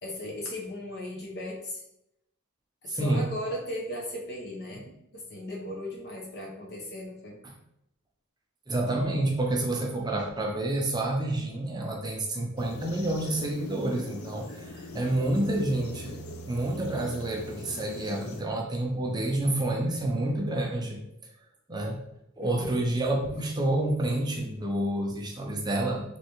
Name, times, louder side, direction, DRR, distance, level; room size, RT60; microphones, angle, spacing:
voice 1, 0.0-1.8 2.8-7.4 22.4-22.8, left 1 dB, 50° left, -1 dB, 1.0 m, -37 dB
voice 2, 2.9-3.3 8.7-16.2 16.5-21.0 21.7-22.0 22.4-26.0, right 1 dB, 20° right, 0 dB, 0.6 m, -29 dB
sound 1, 12.6-18.4, left 1 dB, 80° left, 0.5 m, -42 dB
3.4 x 3.2 x 3.0 m, 0.82 s
head